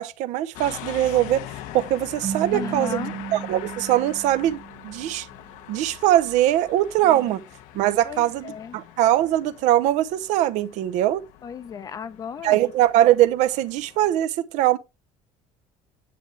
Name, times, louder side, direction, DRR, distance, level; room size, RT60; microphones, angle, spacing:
voice 1, 0.0-1.4 1.7-4.6 4.8-5.3 5.7-7.4 7.7-11.2 12.4-14.8, right 13 dB, 70° right, 0.7 m, -21 dB
sound 1, 0.5-14.2, left 12 dB, 85° left, 1.0 m, -42 dB
sound 2, 2.2-5.4, right 8 dB, 40° right, 1.2 m, -35 dB
voice 2, 2.5-3.2 7.0-7.4 8.0-8.8 11.4-12.6, left 7 dB, 30° left, 0.7 m, -35 dB
9.7 x 8.0 x 3.2 m
cardioid pair, 175°, 13 cm